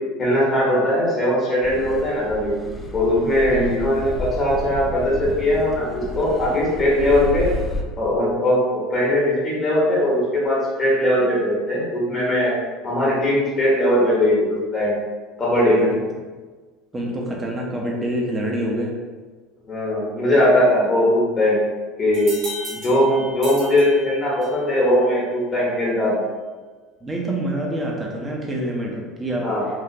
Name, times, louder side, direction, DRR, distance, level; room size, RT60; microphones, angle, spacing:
voice 1, 0.2-2.5 2.9-7.5 8.0-12.5 12.8-14.9 15.4-15.9 19.6-21.6 22.0-22.3 22.7-26.2 29.4-29.7, left 1 dB, 35° left, -5 dB, 1.3 m, -20 dB
Car passing by / Accelerating revving vroom, 1.6-7.8, equal, 5° left, 0.5 m, -31 dB
voice 2, 16.9-18.9 27.0-29.5, right 1 dB, 20° right, -1 dB, 0.9 m, -26 dB
sound 1, 22.1-24.7, equal, 55° right, 1.4 m, -35 dB
3.7 x 2.7 x 2.8 m, 1.4 s
hypercardioid pair, 85°, 0 cm